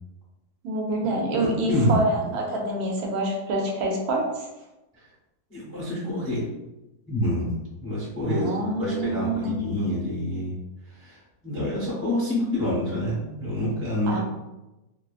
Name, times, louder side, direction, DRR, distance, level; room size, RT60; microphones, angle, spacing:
voice 1, 0.6-4.5 8.3-9.6 14.1-14.2, right 2 dB, 80° right, 0 dB, 1.1 m, -26 dB
voice 2, 1.4-2.0 5.5-6.4 7.1-7.5 7.8-10.5 10.9-14.2, left 1 dB, 15° left, -6 dB, 0.4 m, -27 dB
2.7 x 2.3 x 2.4 m, 1.0 s
omnidirectional pair, 1.6 m